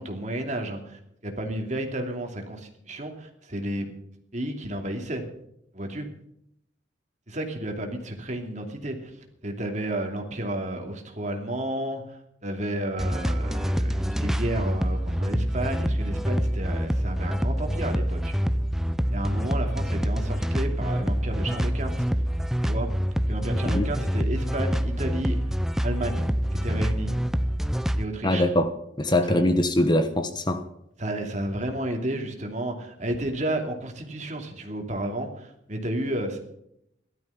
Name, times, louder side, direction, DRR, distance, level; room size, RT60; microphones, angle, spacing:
voice 1, 0.0-3.9 4.3-5.2 5.7-6.1 7.3-9.1 9.4-18.3 19.1-22.0 22.6-22.9 23.3-25.5 25.8-27.1 27.9-28.4 29.1-29.4 31.0-36.4, right 1 dB, 40° right, 4 dB, 2.7 m, -32 dB
sound 1, 13.0-28.1, equal, ahead, 0.6 m, -26 dB
voice 2, 28.2-30.6, left 1 dB, 25° left, 9 dB, 1.0 m, -23 dB
16.0 x 12.5 x 5.8 m, 0.75 s
head